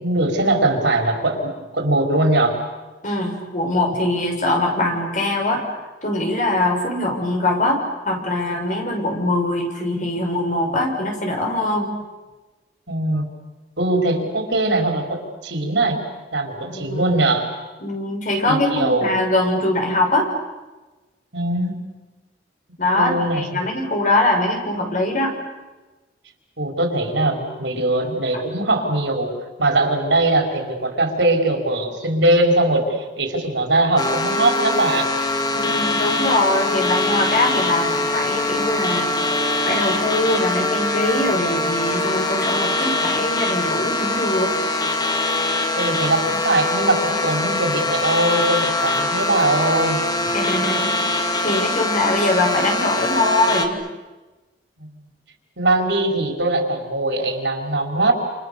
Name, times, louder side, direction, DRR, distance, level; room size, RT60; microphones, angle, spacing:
voice 1, 0.0-2.6 12.9-13.3 13.8-16.0 16.3-17.5 18.5-19.1 21.3-21.8 22.9-23.6 26.6-29.3 29.6-35.1 45.7-50.0 54.8-54.9 55.6-58.1, right 2 dB, 75° right, 2 dB, 5.3 m, -21 dB
voice 2, 3.0-11.9 16.7-17.1 17.8-20.3 22.8-25.3 35.5-39.3 39.7-44.5 50.3-53.8, left 2 dB, 45° left, 2 dB, 6.7 m, -22 dB
sound 1, 34.0-53.7, left 2 dB, 25° left, 2.3 m, -23 dB
30.0 x 28.5 x 7.0 m, 1.2 s
head